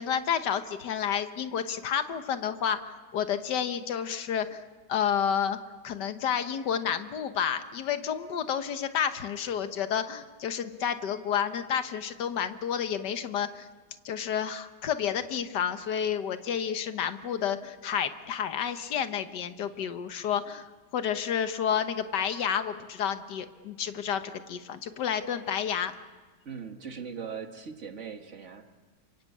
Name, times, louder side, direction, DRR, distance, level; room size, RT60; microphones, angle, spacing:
voice 1, 0.0-4.6 4.9-5.6 5.8-13.7 14.1-20.6 20.9-24.2 24.5-25.9, left 8 dB, 80° left, 9 dB, 1.8 m, -30 dB
voice 2, 26.5-28.7, right 6 dB, 45° right, 6 dB, 1.9 m, -40 dB
27.0 x 24.5 x 8.5 m, 1.4 s
omnidirectional pair, 1.8 m